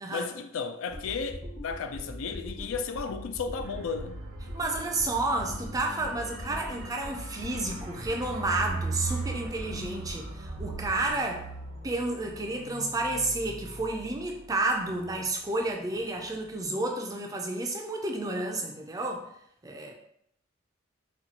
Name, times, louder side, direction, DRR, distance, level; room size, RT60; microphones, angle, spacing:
voice 1, 0.1-4.2, left 5 dB, 80° left, 0.3 m, -34 dB
sound 1, 0.8-11.1, equal, 50° left, 1.0 m, -42 dB
sound 2, 3.6-16.0 16.3-16.5, right 3 dB, 70° right, 0.7 m, -40 dB
voice 2, 4.5-11.5 11.8-19.2 19.6-19.9, right 2 dB, 15° right, 0.4 m, -31 dB
4.2 x 2.3 x 2.8 m
head